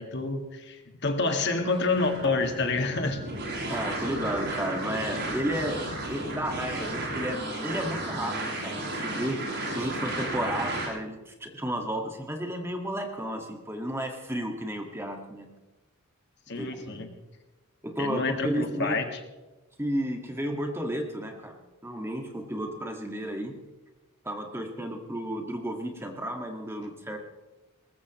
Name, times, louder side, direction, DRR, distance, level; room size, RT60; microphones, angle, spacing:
voice 1, 0.0-3.2 16.5-17.1 18.0-19.2, left 3 dB, 50° left, 5 dB, 1.9 m, -28 dB
sound 1, 1.7-10.9, right 1 dB, 50° right, 7.3 m, -33 dB
voice 2, 3.7-5.8 6.1-15.5 16.6-17.0 17.8-19.0 19.8-23.6 24.2-27.2, equal, 10° right, 3 dB, 1.8 m, -33 dB
22.0 x 20.0 x 3.1 m, 1.1 s
head